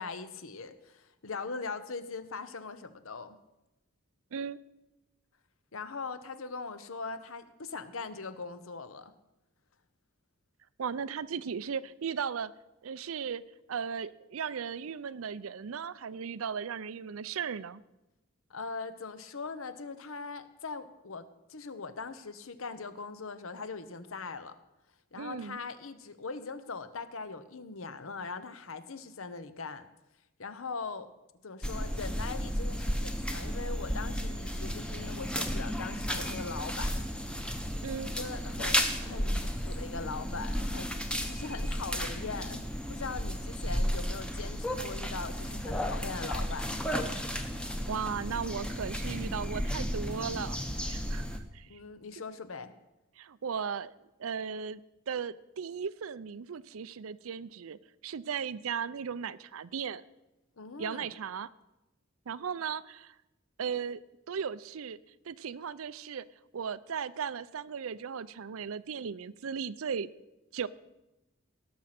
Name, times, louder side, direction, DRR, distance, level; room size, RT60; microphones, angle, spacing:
voice 1, 0.0-3.4 5.7-9.1 18.5-24.6 25.1-29.9 30.4-31.1 31.4-37.0 38.2-40.9 41.3-46.7 51.7-52.7 60.6-61.1, left 4 dB, 70° left, 12 dB, 0.9 m, -41 dB
voice 2, 10.8-12.5 12.8-13.4 13.7-17.8 25.2-25.6 37.8-38.1 47.9-50.6 50.8-51.7 53.2-53.9 54.2-54.8 55.1-60.0 60.8-61.5 62.3-63.1 63.6-65.0 65.3-66.3 66.5-70.1 70.5-70.7, right 6 dB, 75° right, 18 dB, 0.5 m, -36 dB
sound 1, 31.6-51.4, equal, 5° left, 0.8 m, -33 dB
18.0 x 6.4 x 5.9 m, 0.96 s
head